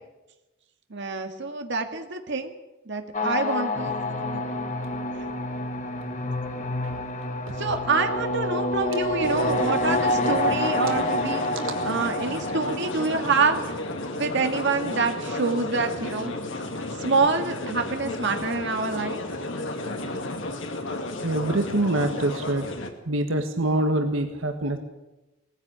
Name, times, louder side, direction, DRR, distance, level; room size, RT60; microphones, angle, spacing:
voice 1, 0.9-2.5 2.9-3.9 4.3-4.5 7.6-11.4 11.8-13.6 14.2-16.3 17.0-19.2, right 4 dB, 65° right, 5 dB, 2.0 m, -26 dB
sound 1, 3.1-14.3, left 1 dB, 40° left, 1.6 m, -28 dB
sound 2, 9.2-22.9, left 2 dB, 70° left, 2.5 m, -33 dB
voice 2, 21.2-22.7 23.1-24.8, right 1 dB, 85° right, 5 dB, 1.6 m, -25 dB
19.0 x 15.5 x 8.7 m, 1.0 s
head